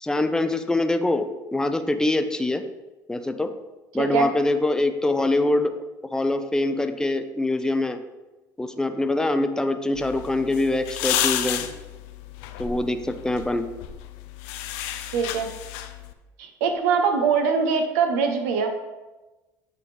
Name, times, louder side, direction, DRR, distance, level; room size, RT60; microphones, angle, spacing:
voice 1, 0.0-2.6 3.1-3.5 3.9-5.8 6.1-8.0 8.6-11.6 12.6-13.7, left 2 dB, 5° left, 7 dB, 0.5 m, -24 dB
voice 2, 4.0-4.3 15.1-15.5 16.4-18.7, right 5 dB, 85° right, 5 dB, 0.8 m, -22 dB
sound 1, 9.9-16.1, left 11 dB, 80° left, 0.4 m, -31 dB
8.6 x 3.4 x 3.3 m, 1.1 s
supercardioid pair, 85°, 9 cm